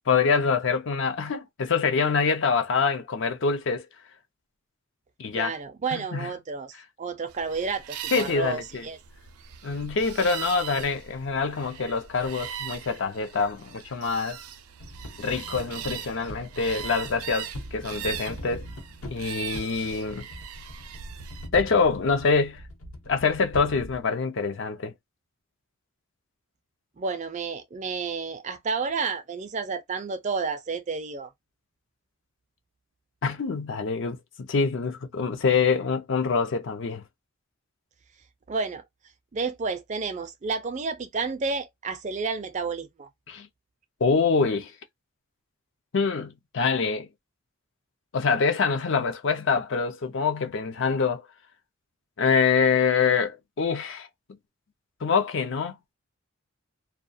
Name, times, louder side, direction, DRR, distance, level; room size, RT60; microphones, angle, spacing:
voice 1, 0.1-3.9 5.2-5.5 5.9-6.3 8.1-8.9 9.6-14.4 15.2-18.6 19.1-20.3 21.5-22.6 23.1-24.9 33.2-37.0 43.3-43.5 44.0-44.7 45.9-47.1 48.1-51.3 52.2-54.1 55.0-55.8, left 5 dB, 60° left, 0.5 m, -25 dB
voice 2, 5.3-9.0 27.0-31.3 38.5-38.8 39.3-43.1, right 4 dB, 35° right, 0.4 m, -31 dB
sound 1, 7.3-21.5, right 9 dB, 90° right, 0.5 m, -40 dB
sound 2, 14.8-24.0, equal, 75° left, 0.9 m, -42 dB
2.3 x 2.2 x 2.6 m
head